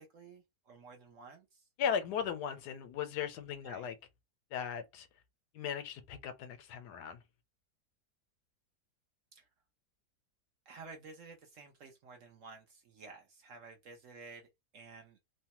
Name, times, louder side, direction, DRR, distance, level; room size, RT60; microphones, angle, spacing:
voice 1, 0.0-1.7 3.6-3.9 9.3-9.5 10.7-15.2, right 4 dB, 65° right, 0.8 m, -53 dB
voice 2, 1.8-3.9 4.5-5.1 5.5-7.2, left 8 dB, 80° left, 1.2 m, -37 dB
3.0 x 2.1 x 2.8 m
omnidirectional pair, 1.7 m